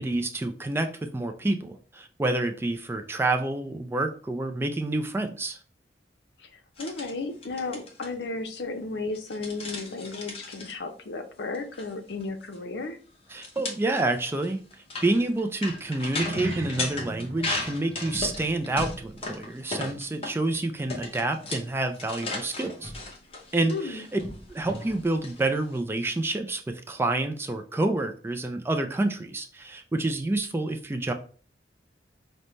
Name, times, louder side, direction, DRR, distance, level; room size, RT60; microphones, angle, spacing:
voice 1, 0.0-5.6 13.3-14.6 15.0-22.9 23.5-24.2 24.5-31.1, right 2 dB, 15° right, 6 dB, 0.3 m, -28 dB
voice 2, 6.4-13.0 23.7-24.1, left 3 dB, 70° left, 7 dB, 0.6 m, -34 dB
sound 1, 6.8-7.1 7.4-8.1 9.1-10.7 11.5-11.8 12.1-12.2 12.5-12.6 13.4-20.6 20.9-25.8, left 2 dB, 35° left, 0.8 m, -36 dB
sound 2, 16.0-20.7 20.9-21.2 21.7-21.8, right 1 dB, 75° right, 0.5 m, -39 dB
5.3 x 2.1 x 3.1 m, 0.41 s
head